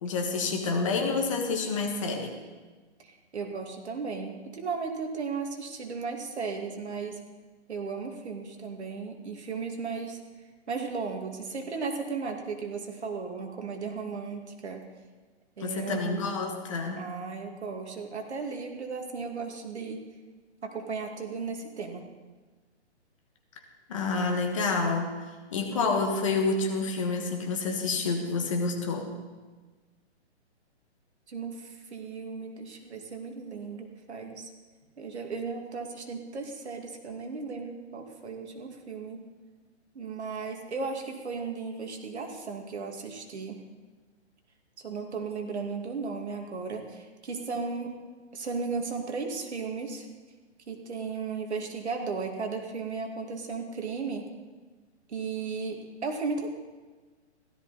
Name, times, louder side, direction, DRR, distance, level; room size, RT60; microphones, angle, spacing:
voice 1, 0.0-2.3 15.6-17.0 23.9-25.2 25.5-29.1, left 4 dB, 30° left, 3 dB, 1.5 m, -28 dB
voice 2, 3.0-7.2 7.7-10.2 10.7-14.8 15.6-16.4 17.0-20.0 20.6-22.0 31.3-34.5 35.0-39.2 39.9-43.6 44.8-48.0 48.3-50.1 50.7-54.3 55.1-56.5, right 4 dB, 70° right, 3 dB, 2.5 m, -35 dB
16.0 x 13.5 x 4.2 m, 1.3 s
hypercardioid pair, 175°, 34 cm